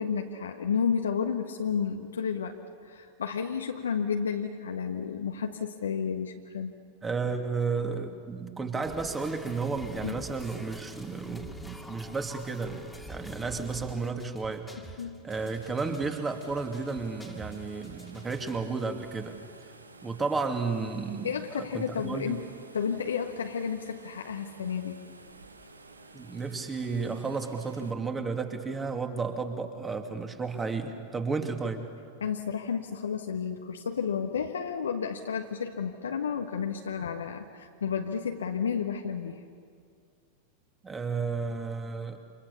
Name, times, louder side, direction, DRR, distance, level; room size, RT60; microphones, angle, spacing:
voice 1, 0.0-2.6 2.8-6.7 10.0-10.2 15.0-15.2 21.2-22.5 22.7-25.0 32.2-39.4, left 6 dB, 70° left, 3 dB, 1.4 m, -31 dB
voice 2, 7.0-12.7 13.1-19.4 20.0-22.4 26.1-31.9 40.8-42.2, right 4 dB, 15° right, 5 dB, 2.7 m, -33 dB
sound 1, 8.8-18.8, equal, 5° left, 2.5 m, -46 dB
sound 2, 15.3-27.9, right 3 dB, 80° right, 1.8 m, -52 dB
29.0 x 27.0 x 7.0 m, 2.2 s
figure-of-eight pair, 90°, 0 cm